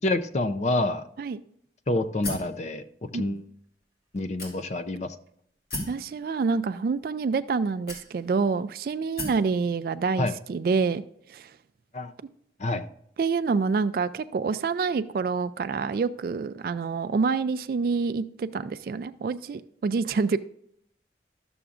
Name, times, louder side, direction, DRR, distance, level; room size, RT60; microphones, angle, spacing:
voice 1, 0.0-1.0 1.9-2.8 3.1-3.4 4.1-5.1 10.2-10.3 11.9-12.1 12.6-12.8, left 2 dB, 40° left, 11 dB, 0.5 m, -27 dB
sound 1, 2.2-2.6 3.4-3.5 4.4-4.9 5.7-6.0 7.0-7.1 7.9-8.4 9.2-9.5, left 1 dB, 55° left, 2.9 m, -35 dB
voice 2, 5.9-11.0 11.3-11.5 13.2-20.4, right 4 dB, 55° right, 12 dB, 0.3 m, -27 dB
12.5 x 6.9 x 2.4 m, 0.70 s
head